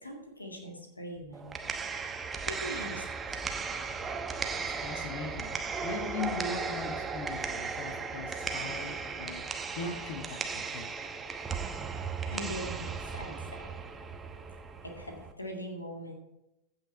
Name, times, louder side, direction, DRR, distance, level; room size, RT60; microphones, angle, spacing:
voice 1, 0.0-1.5 2.5-3.0 12.3-13.7 14.8-16.1, equal, 80° left, 2 dB, 2.0 m, -41 dB
sound 1, 1.3-15.3, right 5 dB, 20° right, 0.9 m, -36 dB
voice 2, 4.8-5.5 5.8-9.4 9.8-10.9, left 3 dB, 50° left, 4 dB, 1.4 m, -39 dB
15.0 x 6.0 x 4.6 m, 0.90 s
figure-of-eight pair, 90°, 0 cm